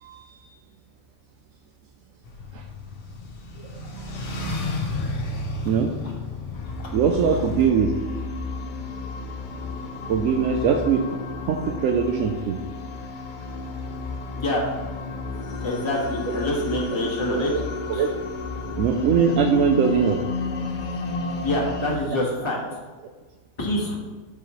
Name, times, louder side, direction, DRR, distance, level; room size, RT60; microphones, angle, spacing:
voice 1, 0.0-0.5 2.5-2.6 5.6-5.9 6.9-7.9 10.1-11.0 11.5-12.6 16.3-16.4 17.3-18.1 18.7-20.2, right 6 dB, 80° right, 4 dB, 1.0 m, -22 dB
sound 1, 2.2-7.7, left 2 dB, 65° left, 1.3 m, -32 dB
sound 2, 6.5-22.0, left 4 dB, 50° left, 0.6 m, -32 dB
voice 2, 14.4-14.7 15.6-17.5 17.9-18.1 21.4-22.6 23.6-24.0, left 1 dB, 20° left, -3 dB, 1.3 m, -26 dB
12.0 x 4.7 x 3.1 m, 1.3 s
omnidirectional pair, 1.4 m